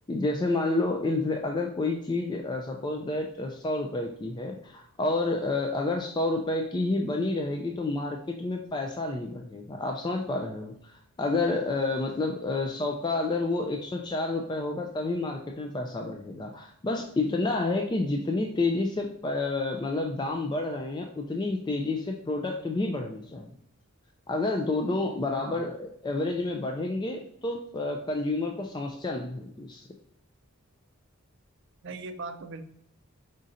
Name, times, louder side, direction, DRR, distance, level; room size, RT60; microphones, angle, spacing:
voice 1, 0.1-10.9 11.2-23.5 24.3-29.8, left 2 dB, 20° left, 2 dB, 0.3 m, -29 dB
voice 2, 25.3-25.7 31.8-32.6, right 3 dB, 55° right, 8 dB, 0.5 m, -39 dB
5.0 x 4.1 x 2.5 m, 0.72 s
head